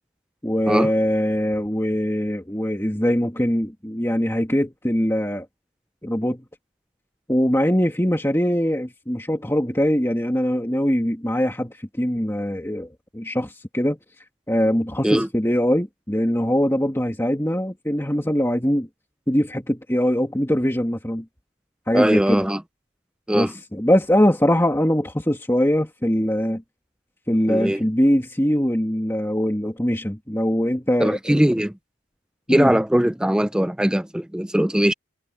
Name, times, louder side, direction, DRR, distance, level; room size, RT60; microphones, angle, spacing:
voice 1, 0.4-5.5 6.0-6.4 7.3-12.9 13.1-14.0 14.5-18.9 19.3-21.2 21.9-22.5 23.3-26.6 27.3-31.4 32.5-32.7, equal, 10° left, 2.5 m, -22 dB
voice 2, 21.9-22.6 23.3-23.5 27.5-27.8 31.0-31.7 32.5-34.9, right 1 dB, 5° right, 0.4 m, -20 dB
head